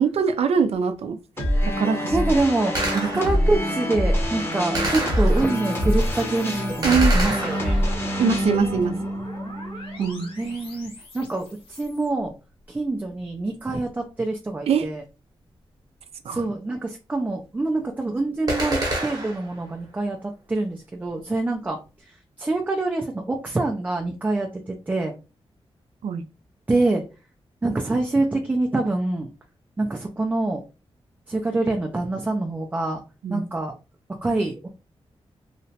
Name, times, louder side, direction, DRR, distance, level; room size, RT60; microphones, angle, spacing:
voice 1, 0.0-2.1 2.9-3.1 6.8-7.2 8.2-8.9 10.0-10.3 14.7-14.9 16.2-16.4 26.0-26.2 33.2-33.4, right 6 dB, 85° right, 0.4 m, -23 dB
sound 1, 1.4-10.5, equal, 25° left, 0.7 m, -25 dB
voice 2, 2.1-2.7 3.0-7.9 10.4-12.3 12.7-15.0 16.3-21.8 22.4-25.1 26.7-27.0 27.6-29.3 29.8-30.6 31.3-33.0 33.3-33.7 34.2-34.7, right 2 dB, 15° right, 0.3 m, -25 dB
Gunshot gunfire, 2.8-3.6 4.8-5.7 6.8-8.1 18.5-19.6, right 1 dB, 40° right, 0.8 m, -28 dB
sound 2, 4.5-12.1, left 1 dB, 60° left, 1.1 m, -43 dB
2.8 x 2.1 x 2.7 m
wide cardioid pair, 160°, 10 cm